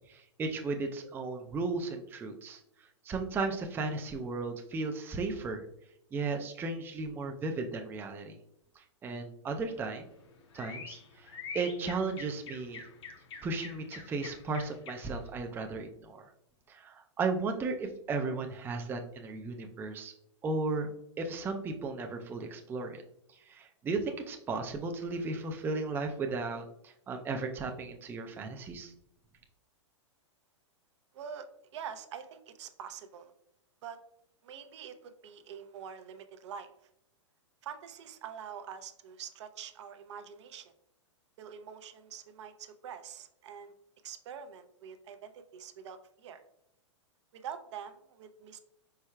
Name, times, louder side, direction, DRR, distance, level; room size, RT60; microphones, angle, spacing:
voice 1, 0.1-2.6 3.0-5.6 6.1-8.4 8.8-10.1 10.5-12.9 13.4-16.2 16.7-20.1 20.4-20.9 21.2-23.0 23.3-28.9, right 3 dB, 15° right, 4 dB, 0.4 m, -35 dB
Whistling Bird backyard, 9.7-15.3, left 5 dB, 60° left, 0.8 m, -46 dB
voice 2, 31.1-31.5 31.7-33.3 33.8-34.0 34.4-36.7 37.6-40.7 41.4-43.7 44.0-46.4 47.3-48.6, right 8 dB, 65° right, 9 dB, 0.6 m, -45 dB
4.6 x 4.5 x 2.2 m, 0.76 s
hypercardioid pair, 120°, 16 cm